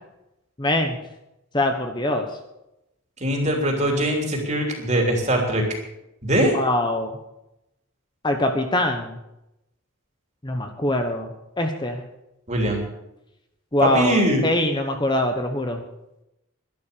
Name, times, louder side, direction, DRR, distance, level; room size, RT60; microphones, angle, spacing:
voice 1, 0.6-1.0 1.5-2.3 6.4-7.2 8.2-9.2 10.4-11.3 11.6-12.0 13.7-15.8, left 1 dB, 20° left, 5 dB, 1.1 m, -23 dB
voice 2, 3.2-5.6 6.2-6.5 12.5-12.8 13.8-14.5, right 1 dB, 35° right, 2 dB, 3.3 m, -22 dB
12.0 x 12.0 x 6.9 m, 0.88 s
head